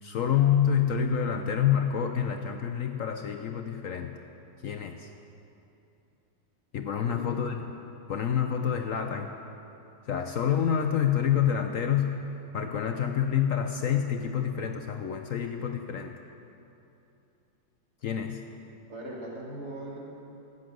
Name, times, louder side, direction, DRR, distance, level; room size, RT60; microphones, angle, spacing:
voice 1, 0.0-4.2 4.6-5.1 6.7-7.7 8.1-9.3 10.1-12.2 12.5-16.1 18.0-18.4, left 8 dB, 65° left, 5 dB, 0.8 m, -27 dB
voice 2, 7.0-7.4 18.9-20.0, right 1 dB, 60° right, -3 dB, 2.8 m, -39 dB
14.0 x 9.3 x 7.6 m, 2.9 s
omnidirectional pair, 1.9 m